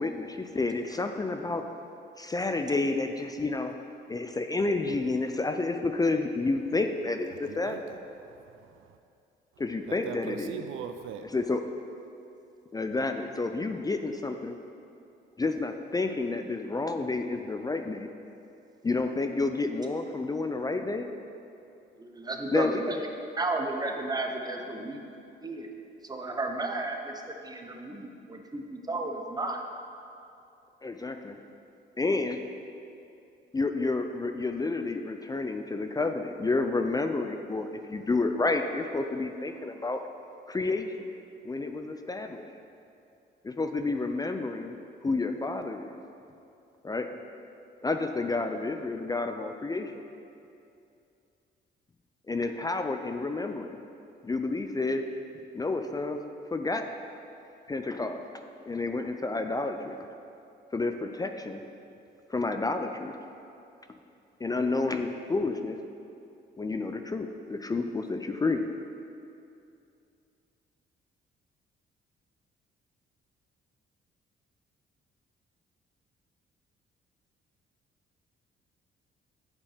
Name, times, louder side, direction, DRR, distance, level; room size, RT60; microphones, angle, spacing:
voice 1, 0.0-1.7 2.2-3.7 4.1-7.8 9.6-10.6 11.2-11.6 12.7-14.6 15.4-18.1 18.8-21.1 22.5-22.8 30.8-31.4 32.0-32.4 33.5-40.0 40.5-41.1 41.4-42.5 43.4-44.8 45.0-46.0 46.8-47.1 47.8-50.0 52.3-53.8 54.2-55.0 55.5-56.2 56.5-56.9 57.7-58.2 58.7-60.1 60.7-61.6 62.3-63.1 64.4-65.8 66.6-68.6, left 3 dB, 20° left, 6 dB, 0.4 m, -30 dB
voice 2, 7.5-8.9 9.9-11.3, right 8 dB, 85° right, 8 dB, 0.5 m, -41 dB
voice 3, 22.0-23.1 23.4-25.0 25.4-29.6, right 2 dB, 20° right, 3 dB, 0.9 m, -33 dB
8.3 x 5.2 x 5.0 m, 2.6 s
cardioid pair, 90°, 20 cm